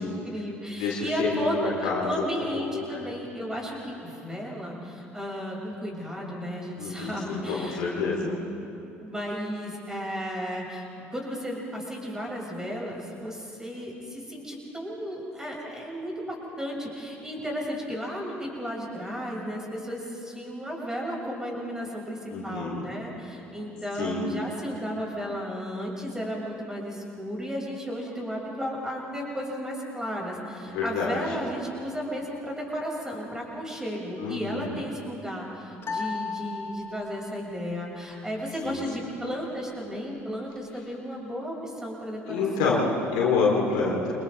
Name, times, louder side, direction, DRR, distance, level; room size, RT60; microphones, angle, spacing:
voice 1, 0.0-8.3 9.0-42.8, equal, 10° right, -3 dB, 7.1 m, -34 dB
voice 2, 0.8-3.0 6.8-8.3 22.3-22.8 23.9-24.4 30.6-31.3 34.2-34.8 38.6-38.8 42.3-44.1, left 4 dB, 65° left, -4 dB, 4.1 m, -28 dB
sound 1, 35.8-37.3, left 4 dB, 30° left, 1.9 m, -34 dB
29.5 x 26.0 x 3.7 m, 2.8 s
figure-of-eight pair, 55°, 7 cm